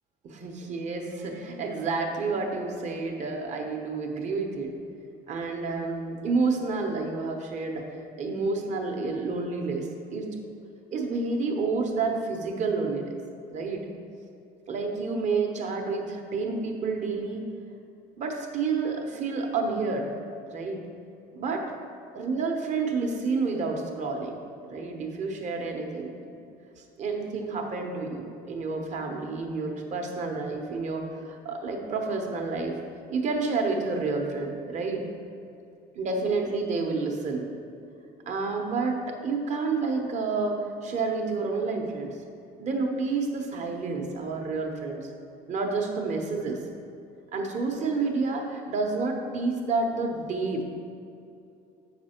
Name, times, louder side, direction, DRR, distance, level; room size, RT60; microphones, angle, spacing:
voice 1, 0.2-4.7 5.3-7.8 8.2-10.3 10.9-13.1 13.5-13.8 14.7-17.4 18.2-20.1 20.5-20.8 21.3-21.6 22.1-24.3 24.6-26.3 26.8-32.8 33.1-35.0 36.0-37.4 38.3-42.2 42.6-45.1 45.5-46.6 47.3-50.6, right 4 dB, 45° right, 2 dB, 1.0 m, -29 dB
7.8 x 6.0 x 4.4 m, 2.6 s
cardioid pair, 150°, 18 cm